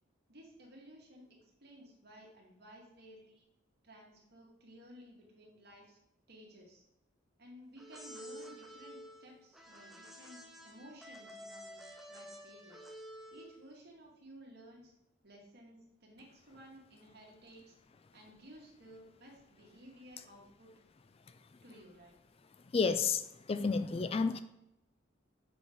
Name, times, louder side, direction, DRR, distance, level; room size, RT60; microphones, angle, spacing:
voice 1, 0.3-3.4 3.8-6.0 6.3-6.8 7.4-12.9 13.3-14.9 15.2-17.8 18.1-20.7 21.6-22.1, equal, 55° right, -1 dB, 2.2 m, -56 dB
sound 1, 7.8-13.7, equal, ahead, 0.8 m, -50 dB
voice 2, 22.7-24.4, left 5 dB, 30° left, 11 dB, 0.3 m, -31 dB
6.9 x 5.4 x 4.6 m, 0.87 s
head